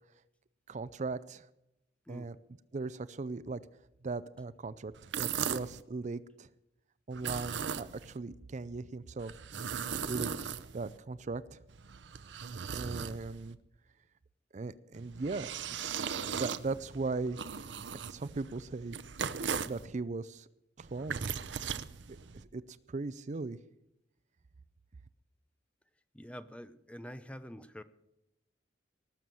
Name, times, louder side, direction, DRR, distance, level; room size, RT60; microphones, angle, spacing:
voice 1, 0.7-1.5 2.1-2.4 2.7-3.6 4.0-6.5 7.1-9.3 9.6-10.3 10.7-11.6 12.7-13.6 14.5-15.9 16.3-17.4 17.8-19.0 19.5-20.5 20.8-21.3 22.1-22.2 22.5-23.6, right 3 dB, 40° right, 16 dB, 0.5 m, -38 dB
voice 2, 2.1-2.4 26.1-27.8, equal, 5° left, 12 dB, 0.7 m, -46 dB
sound 1, 5.0-5.8 7.1-8.2 9.2-11.0 11.7-13.5 14.9-19.8 20.8-22.4, right 7 dB, 75° right, 0.7 m, -38 dB
18.5 x 7.1 x 7.6 m, 0.87 s
head